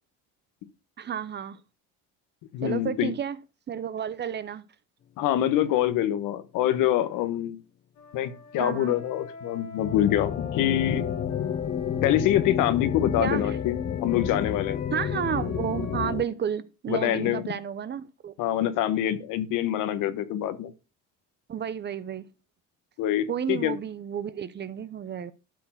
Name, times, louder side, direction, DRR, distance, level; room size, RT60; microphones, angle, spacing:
voice 1, 1.0-1.6 2.6-3.4 3.7-4.6 8.6-9.0 13.2-13.6 14.9-18.3 21.5-22.3 23.3-25.3, right 8 dB, 35° right, 0.7 m, -31 dB
voice 2, 2.5-3.1 5.2-7.6 8.1-11.1 12.0-14.8 16.9-17.4 18.4-20.7 23.0-23.8, left 12 dB, 80° left, 1.3 m, -25 dB
Wind instrument woodwind instrument, 7.9-12.1 12.7-16.0, left 5 dB, 60° left, 2.3 m, -45 dB
sound 1, 9.8-16.2, left 8 dB, 35° left, 0.6 m, -30 dB
12.0 x 4.5 x 5.8 m
cardioid pair, 125°, 31 cm